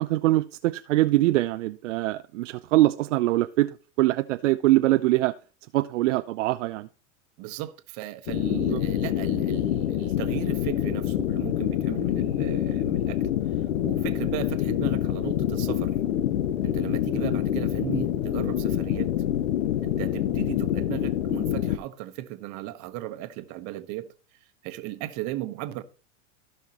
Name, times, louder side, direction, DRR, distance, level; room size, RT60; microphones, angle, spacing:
voice 1, 0.0-3.7 4.0-5.3 5.7-6.9 8.7-8.8, right 17 dB, 75° right, 0.5 m, -23 dB
voice 2, 7.4-13.2 13.8-16.0 16.6-19.1 19.8-24.1 24.6-25.8, right 14 dB, 50° right, 1.1 m, -36 dB
sound 1, 8.3-21.8, left 11 dB, 75° left, 0.9 m, -26 dB
15.5 x 5.7 x 2.9 m
hypercardioid pair, 110°, 38 cm